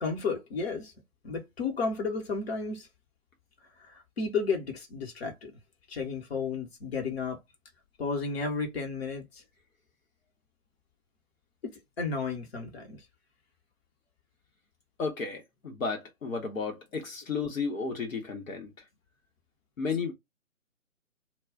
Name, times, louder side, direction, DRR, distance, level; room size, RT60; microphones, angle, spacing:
voice 1, 0.0-0.9 1.2-2.9 3.8-5.6 5.9-7.4 8.0-9.4 11.6-13.0, left 4 dB, 45° left, 1.1 m, -33 dB
voice 2, 15.0-18.7 19.8-20.1, left 4 dB, 70° left, 1.1 m, -33 dB
2.3 x 2.3 x 3.5 m
figure-of-eight pair, 145°, 42 cm